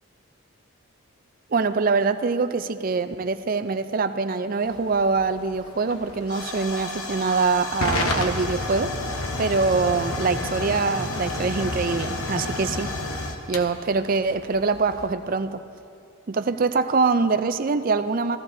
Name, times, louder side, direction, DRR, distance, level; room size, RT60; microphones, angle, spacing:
voice 1, 1.5-8.9 9.4-12.9 13.5-15.6 16.3-18.4, right 4 dB, 40° right, 10 dB, 0.4 m, -24 dB
Hiss / Fire / Tick, 4.7-15.1, left 2 dB, 85° left, 0.9 m, -31 dB
16.5 x 14.0 x 2.7 m, 2.4 s
head